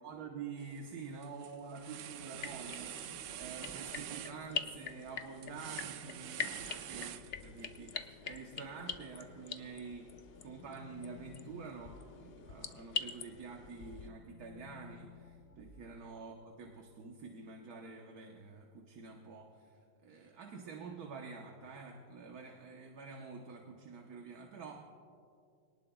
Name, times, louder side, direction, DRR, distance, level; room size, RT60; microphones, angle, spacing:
voice 1, 0.0-24.9, right 5 dB, 60° right, 2 dB, 1.4 m, -48 dB
sound 1, 0.6-0.9 1.2-7.8, right 11 dB, 75° right, 1.2 m, -46 dB
sound 2, 2.3-14.1, left 6 dB, 90° left, 0.5 m, -44 dB
sound 3, 9.2-13.1 13.5-16.9, left 6 dB, 15° left, 0.9 m, -59 dB
25.0 x 18.5 x 2.3 m, 2.4 s
omnidirectional pair, 2.0 m